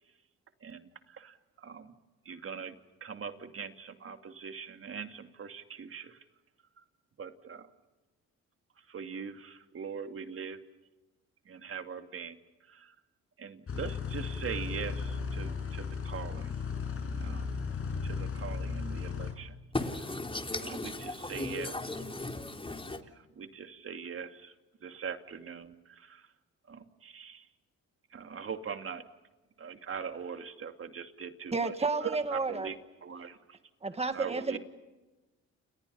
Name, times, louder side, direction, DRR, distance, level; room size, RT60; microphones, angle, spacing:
voice 1, 0.6-1.9 2.2-2.7 3.0-6.2 7.2-7.7 8.9-10.6 11.5-12.4 12.7-12.9 13.4-16.5 17.2-17.5 18.0-19.6 20.6-21.7 23.4-24.5 24.8-26.3 26.7-27.5 28.1-29.0 29.6-32.8 33.0-33.6 34.1-34.6, right 6 dB, 45° right, 7 dB, 2.6 m, -41 dB
sound 1, 13.7-19.3, left 5 dB, 45° left, 6.9 m, -35 dB
voice 2, 19.7-23.0, left 2 dB, 15° left, 5 dB, 3.4 m, -36 dB
voice 3, 31.5-32.7 33.8-34.6, right 3 dB, 20° right, 9 dB, 1.9 m, -31 dB
30.0 x 30.0 x 5.6 m, 1.1 s
cardioid pair, 90°, 30 cm